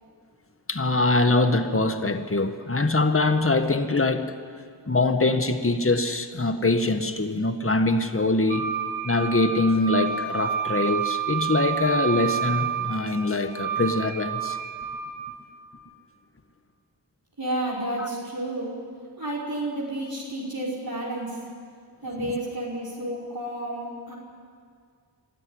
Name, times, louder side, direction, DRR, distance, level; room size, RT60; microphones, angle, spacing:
voice 1, 0.7-4.3 4.9-8.6 9.0-14.6 18.0-18.1 22.2-22.3, left 2 dB, 30° left, 1.6 m, -23 dB
Wind instrument woodwind instrument, 8.5-15.2, right 8 dB, 80° right, 3.8 m, -29 dB
voice 2, 17.4-18.7 19.2-21.4 22.0-24.1, right 1 dB, 50° right, 5.3 m, -31 dB
24.5 x 13.5 x 9.7 m
cardioid pair, 40°, 45 cm